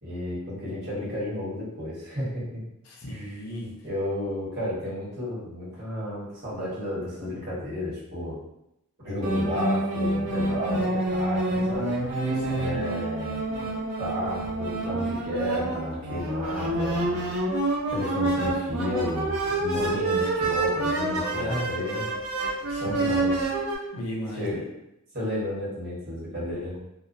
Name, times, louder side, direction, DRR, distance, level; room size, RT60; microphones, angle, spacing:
voice 1, 0.0-2.6 3.1-3.4 3.8-8.3 9.0-11.4 11.7-12.3 12.6-13.4 14.0-17.3 17.9-22.1 22.8-23.5 24.3-24.7 25.1-26.8, equal, 50° right, -8 dB, 1.2 m, -32 dB
voice 2, 2.9-3.9 12.3-12.7 14.2-14.3 21.3-21.7 22.7-23.0 23.9-24.6, equal, 90° left, -2 dB, 0.7 m, -35 dB
sound 1, 9.2-23.8, right 2 dB, 85° right, 0.7 m, -27 dB
2.8 x 2.1 x 2.5 m, 0.83 s
head